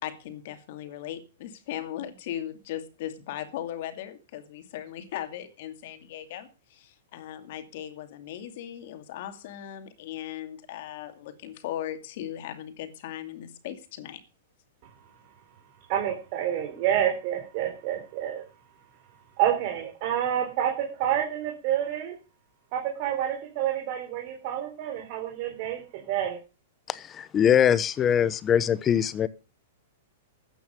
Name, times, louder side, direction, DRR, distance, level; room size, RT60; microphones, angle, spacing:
voice 1, 0.0-14.2, left 11 dB, 55° left, 9 dB, 2.4 m, -38 dB
voice 2, 15.9-18.4 19.4-22.2 22.7-26.4, right 10 dB, 45° right, 2 dB, 3.6 m, -28 dB
voice 3, 26.9-29.3, left 9 dB, 20° left, 18 dB, 0.9 m, -22 dB
14.0 x 9.2 x 5.2 m, 0.33 s
hypercardioid pair, 145°, 0 cm